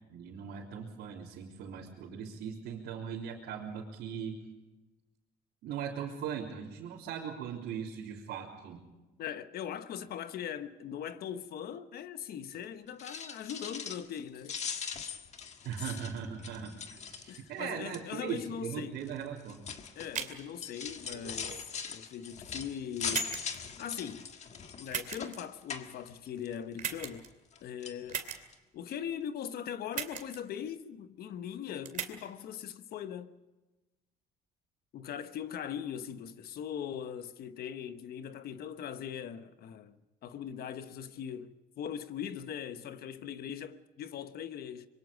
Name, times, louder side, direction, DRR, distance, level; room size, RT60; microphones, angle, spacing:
voice 1, 0.1-4.4 5.6-8.8 15.6-19.6, right 8 dB, 85° right, 3.6 m, -39 dB
voice 2, 9.2-14.6 15.8-15.9 17.3-19.0 20.0-23.4 23.8-24.3 24.8-27.3 27.6-28.3 28.7-33.4 34.9-44.9, left 9 dB, 65° left, 1.2 m, -40 dB
sound 1, 12.9-14.2 14.4-17.6 17.9-18.3 19.0-26.5 26.9-27.6 27.8-28.0 28.5-28.6 28.9-29.0, left 6 dB, 40° left, 1.7 m, -41 dB
sound 2, 20.1-20.4 21.0-21.7 22.4-22.5 23.1-23.6 24.9-25.4 26.8-27.3 28.1-28.4 29.9-30.4 30.7-30.8 31.8-32.1, right 8 dB, 50° right, 2.6 m, -37 dB
26.0 x 23.0 x 5.2 m
cardioid pair, 110°, 17 cm